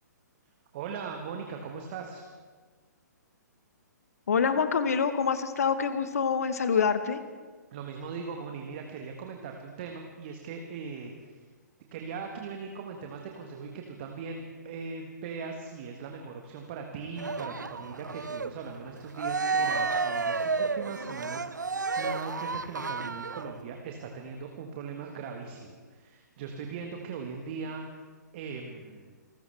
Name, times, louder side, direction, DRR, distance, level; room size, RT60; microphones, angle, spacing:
voice 1, 0.7-2.2 7.7-11.4 11.9-27.8 28.3-29.1, right 5 dB, 35° right, 3 dB, 1.5 m, -39 dB
voice 2, 4.3-7.2, left 6 dB, 55° left, 10 dB, 1.3 m, -26 dB
Cheering, 17.2-23.6, right 4 dB, 75° right, 0.6 m, -31 dB
27.0 x 14.0 x 3.4 m, 1.5 s
figure-of-eight pair, 125°, 10 cm